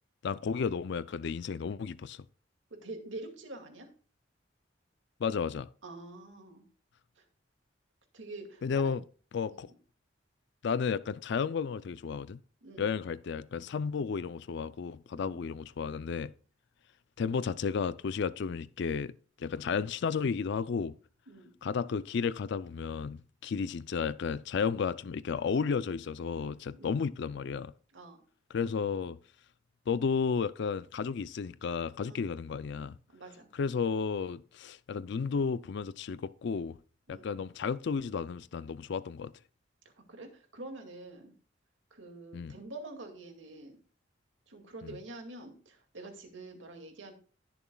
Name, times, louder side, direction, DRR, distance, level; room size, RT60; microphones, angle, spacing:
voice 1, 0.2-2.2 5.2-5.7 8.6-9.0 9.3-9.7 10.6-12.4 12.8-16.3 17.2-19.1 19.4-20.9 21.6-27.7 28.5-29.2 29.9-33.0 33.5-36.8 37.1-39.3 42.3-42.6, left 5 dB, 65° left, 0.4 m, -33 dB
voice 2, 2.7-3.9 5.8-6.7 7.2-7.3 8.1-8.8 12.6-13.0 15.2-15.3 21.3-21.5 26.7-27.0 27.9-28.2 32.1-32.2 33.1-33.5 37.1-37.3 39.8-41.3 41.9-43.8 44.5-47.1, right 2 dB, 80° right, 2.2 m, -46 dB
19.5 x 7.0 x 2.3 m
head